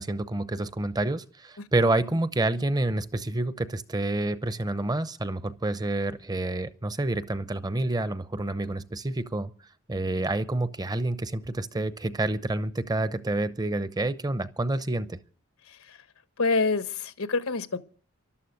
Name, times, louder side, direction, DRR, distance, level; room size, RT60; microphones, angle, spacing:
voice 1, 0.0-9.5 9.9-15.2, right 2 dB, 20° right, 0.7 m, -28 dB
voice 2, 16.4-17.8, left 3 dB, 85° left, 1.2 m, -27 dB
13.0 x 12.0 x 6.5 m
head